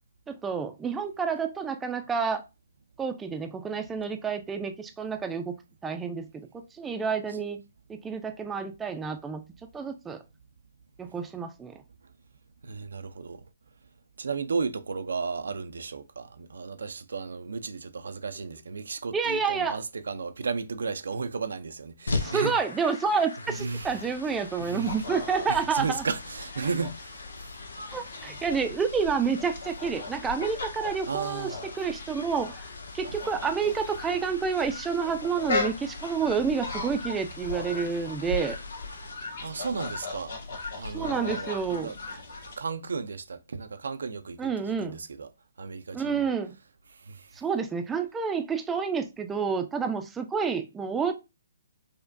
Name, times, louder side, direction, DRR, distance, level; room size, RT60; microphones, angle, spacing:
voice 1, 0.3-2.4 3.0-5.6 5.8-7.6 7.9-9.4 9.7-10.2 11.0-11.8 19.1-19.8 22.2-26.0 27.9-38.6 40.9-41.9 44.4-45.0 45.9-46.5 47.4-51.1, right 5 dB, 10° right, 0.4 m, -29 dB
voice 2, 12.6-13.4 14.2-22.6 23.5-24.0 24.6-24.9 25.5-27.2 31.1-31.6 39.4-40.3 40.8-42.2 42.6-45.3 45.6-46.3 47.1-47.2, right 4 dB, 80° right, 0.4 m, -34 dB
sound 1, 22.1-39.1, left 3 dB, 85° left, 0.6 m, -41 dB
sound 2, 24.8-42.6, left 3 dB, 65° left, 1.6 m, -38 dB
5.0 x 2.1 x 2.5 m
hypercardioid pair, 145°, 0 cm